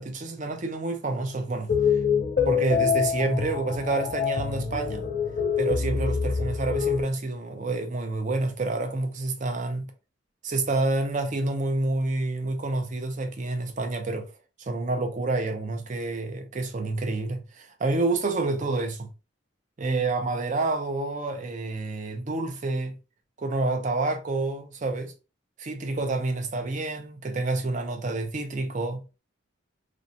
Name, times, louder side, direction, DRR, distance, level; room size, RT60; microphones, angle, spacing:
voice 1, 0.0-1.7 2.5-5.1 5.6-9.9 10.4-14.3 14.6-19.1 19.8-23.0 23.4-25.1 25.6-29.0, right 2 dB, 35° right, 0.4 m, -28 dB
sound 1, 1.7-7.0, left 7 dB, 40° left, 0.4 m, -25 dB
2.5 x 2.0 x 2.6 m
head